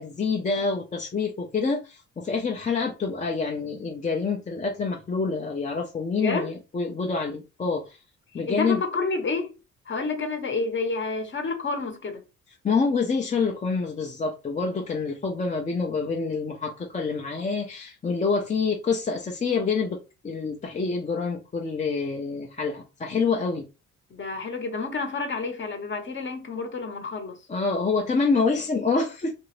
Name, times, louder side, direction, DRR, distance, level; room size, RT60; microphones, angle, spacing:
voice 1, 0.0-8.0 8.3-8.8 12.6-20.0 20.2-23.7 27.5-29.3, left 4 dB, 25° left, 0.5 m, -27 dB
voice 2, 6.2-6.5 8.5-9.5 9.9-12.2 24.1-27.4, left 3 dB, 40° left, 0.9 m, -29 dB
2.9 x 2.6 x 3.1 m
cardioid pair, 90°, 30 cm